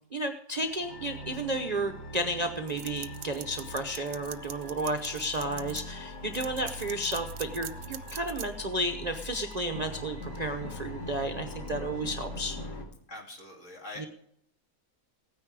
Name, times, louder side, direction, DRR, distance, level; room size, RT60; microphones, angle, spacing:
voice 1, 0.1-12.6 14.0-14.1, right 1 dB, 35° right, 6 dB, 0.7 m, -32 dB
sound 1, 0.6-12.8, left 1 dB, 85° left, 2.7 m, -42 dB
sound 2, 2.7-5.8 6.3-8.5, right 11 dB, 70° right, 1.1 m, -42 dB
voice 2, 6.6-7.0 13.1-14.1, left 2 dB, 50° left, 0 dB, 3.1 m, -44 dB
16.0 x 9.7 x 4.7 m, 0.68 s
omnidirectional pair, 1.7 m